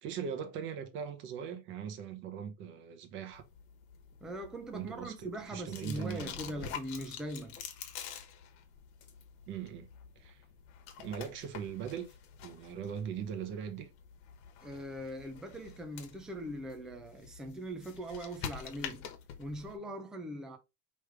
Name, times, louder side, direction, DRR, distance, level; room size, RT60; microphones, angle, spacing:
voice 1, 0.0-3.4 4.7-6.8 9.5-9.9 10.2-10.4 11.0-13.9, right 8 dB, 40° right, 0.9 m, -40 dB
sound 1, 3.3-19.8, left 8 dB, 80° left, 1.2 m, -48 dB
voice 2, 4.2-7.6 14.6-19.1 19.4-20.6, right 1 dB, ahead, 0.3 m, -41 dB
5.0 x 3.2 x 3.2 m
cardioid pair, 180°, 31 cm